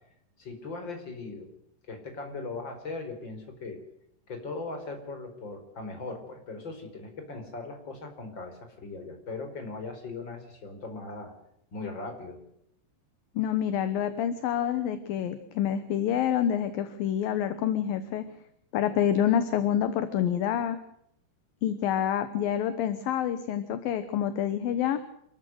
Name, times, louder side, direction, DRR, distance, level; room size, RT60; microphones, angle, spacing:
voice 1, 0.4-1.5 1.9-3.8 4.3-11.3 11.7-12.4, left 3 dB, 25° left, 5 dB, 4.8 m, -39 dB
voice 2, 13.4-18.2 18.7-20.8 21.6-25.0, left 9 dB, 65° left, 11 dB, 2.5 m, -27 dB
28.5 x 13.0 x 7.9 m, 0.73 s
omnidirectional pair, 5.1 m